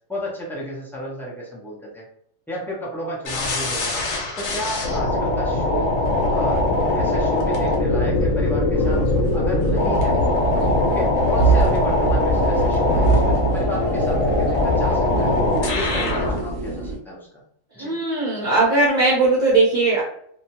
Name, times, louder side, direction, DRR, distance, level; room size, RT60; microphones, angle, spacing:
voice 1, 0.1-2.1 2.5-4.0 4.4-6.0 6.3-6.7 6.9-9.0 9.3-10.2 10.5-15.3 15.6-17.2 17.7-18.0, equal, 5° left, -4 dB, 0.4 m, -32 dB
sound 1, 3.3-16.4, left 2 dB, 80° left, 1.1 m, -21 dB
sound 2, 8.8-17.0, right 3 dB, 70° right, 0.9 m, -25 dB
voice 2, 17.8-20.0, right 3 dB, 45° right, -5 dB, 0.8 m, -18 dB
2.7 x 2.2 x 2.8 m, 0.67 s
omnidirectional pair, 1.4 m